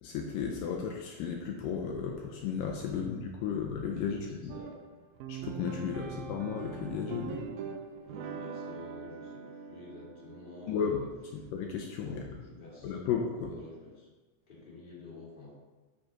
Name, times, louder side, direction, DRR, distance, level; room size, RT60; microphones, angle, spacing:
voice 1, 0.0-4.5 5.3-7.5 10.7-11.0 11.5-12.2 12.8-13.5, left 7 dB, 80° left, 1 dB, 2.2 m, -34 dB
voice 2, 4.0-4.7 5.8-6.2 8.0-11.1 12.0-13.0 13.3-14.1 14.5-15.5, left 2 dB, 15° left, -7 dB, 2.1 m, -49 dB
sound 1, 4.5-13.0, right 6 dB, 80° right, 2.2 m, -43 dB
8.5 x 5.0 x 3.9 m, 1.2 s
omnidirectional pair, 4.2 m